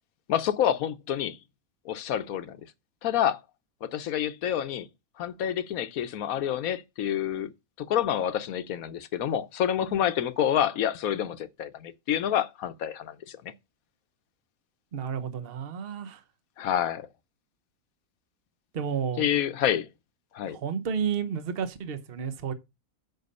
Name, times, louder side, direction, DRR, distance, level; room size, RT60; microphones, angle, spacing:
voice 1, 0.3-1.4 1.8-2.6 3.0-3.4 3.8-4.9 5.2-7.5 7.8-13.5 16.6-17.1 19.2-19.9 20.3-20.6, left 10 dB, 75° left, 1.2 m, -28 dB
voice 2, 14.9-16.2 18.7-19.2 20.5-22.5, right 7 dB, 45° right, 1.1 m, -31 dB
8.0 x 5.6 x 5.3 m
omnidirectional pair, 1.5 m